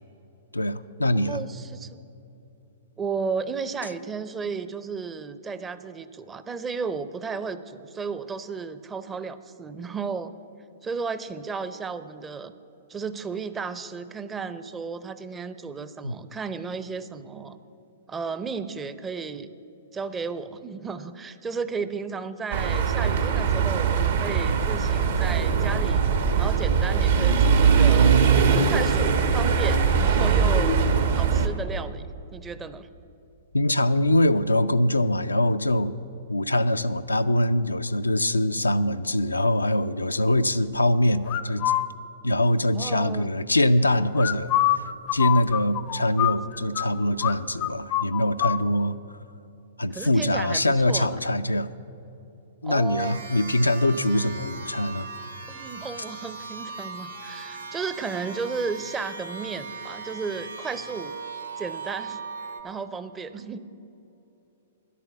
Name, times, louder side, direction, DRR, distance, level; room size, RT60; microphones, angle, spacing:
voice 1, 0.5-1.4 16.0-16.1 33.5-35.9 36.3-41.6 42.2-44.8 45.1-49.0 49.8-51.7 52.6-55.1, left 1 dB, 90° left, 10 dB, 0.4 m, -23 dB
voice 2, 1.1-2.0 3.0-10.3 10.8-12.5 12.9-17.6 18.1-19.5 19.9-26.0 26.4-28.1 28.5-30.8 31.1-32.1 32.3-32.9 42.8-43.3 49.9-51.2 52.6-53.2 55.5-61.1 61.6-62.2 62.6-63.6, right 5 dB, 15° right, 13 dB, 0.5 m, -33 dB
sound 1, 22.5-31.5, right 6 dB, 65° right, 1.0 m, -21 dB
sound 2, 41.3-41.9 44.2-46.9 47.2-47.4 47.6-48.6, left 13 dB, 35° left, 0.5 m, -25 dB
sound 3, 53.0-62.6, right 4 dB, 85° right, 2.0 m, -39 dB
11.0 x 8.4 x 8.3 m, 2.9 s
figure-of-eight pair, 110°, 0 cm